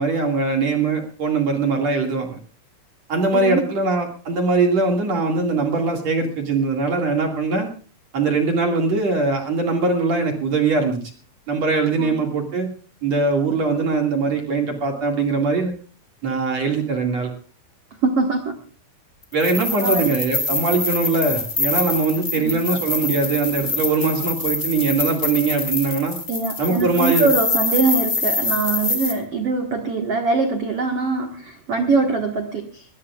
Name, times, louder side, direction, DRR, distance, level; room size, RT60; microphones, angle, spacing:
voice 1, 0.0-2.4 3.1-7.7 8.1-11.0 11.5-12.7 13.0-15.7 16.2-17.3 19.3-26.2 26.6-27.3, right 3 dB, 45° right, 2 dB, 2.6 m, -21 dB
voice 2, 3.3-3.6 12.0-12.2 18.0-18.6 19.8-20.1 22.3-22.6 26.3-32.8, right 3 dB, 80° right, 4 dB, 1.3 m, -22 dB
sound 1, 19.3-29.1, left 3 dB, 45° left, 0.7 m, -25 dB
21.0 x 19.0 x 2.4 m, 0.38 s
omnidirectional pair, 5.4 m